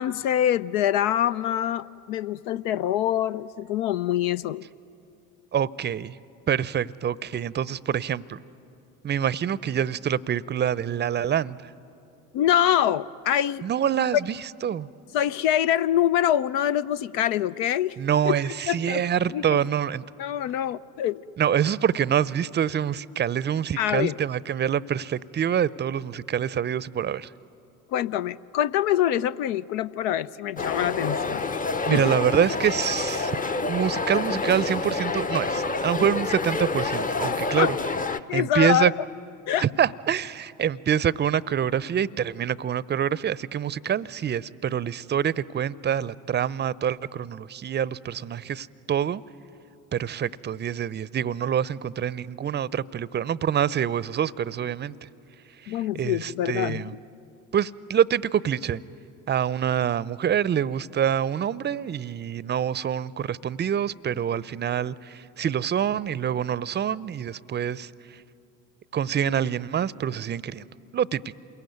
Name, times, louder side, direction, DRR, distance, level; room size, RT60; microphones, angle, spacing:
voice 1, 0.0-4.7 12.3-13.6 15.1-18.0 18.2-18.4 18.7-19.0 19.3-19.6 20.2-21.2 23.8-24.1 27.9-31.4 31.9-32.1 37.6-37.7 38.3-38.9 39.5-39.6 55.7-56.9, left 11 dB, 60° left, 14 dB, 0.6 m, -25 dB
voice 2, 5.5-6.2 6.5-8.4 9.0-11.6 13.6-14.9 18.0-20.0 21.4-27.3 31.8-33.4 33.7-37.7 38.3-38.9 39.6-49.2 49.9-55.1 55.6-56.9 57.5-58.8 59.3-68.2 68.9-70.7 70.9-71.4, right 9 dB, 25° right, 20 dB, 0.7 m, -26 dB
sound 1, 30.6-38.2, left 3 dB, 20° left, 0.9 m, -28 dB
28.0 x 22.5 x 9.4 m, 2.7 s
hypercardioid pair, 65°, 40 cm